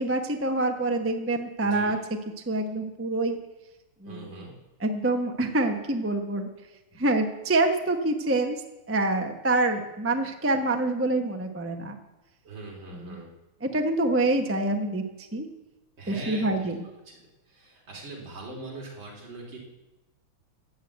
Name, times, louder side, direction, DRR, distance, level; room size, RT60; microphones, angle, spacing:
voice 1, 0.0-2.0 2.5-3.4 4.0-4.3 4.8-6.5 6.9-8.6 8.9-12.0 13.0-13.2 13.6-15.0 15.3-15.5 16.1-16.8, right 2 dB, 10° right, 4 dB, 0.7 m, -26 dB
voice 2, 1.6-2.0 4.1-4.5 12.4-13.3 16.0-16.5 17.5-19.6, right 2 dB, 60° right, -2 dB, 3.9 m, -41 dB
13.5 x 8.7 x 8.0 m, 1.0 s
omnidirectional pair, 2.4 m